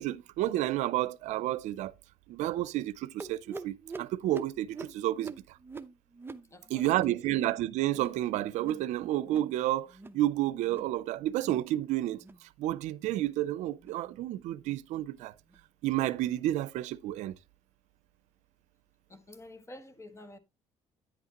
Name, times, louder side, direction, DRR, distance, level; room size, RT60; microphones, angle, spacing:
voice 1, 0.0-1.9 2.3-5.3 6.7-12.2 12.6-15.3 15.8-17.3, right 14 dB, 85° right, 0.5 m, -30 dB
sound 1, 3.2-8.2 8.5-8.9 9.2-9.6 9.9-10.2 10.6-11.0 11.4-11.7 12.1-12.4 12.9-13.2 13.8-14.0 14.6-14.8 15.5-15.6 16.4-16.5, right 4 dB, 20° right, 0.8 m, -45 dB
voice 2, 6.5-7.2 19.1-20.4, left 1 dB, 25° left, 1.4 m, -50 dB
10.0 x 8.3 x 2.9 m
cardioid pair, 95°, 12 cm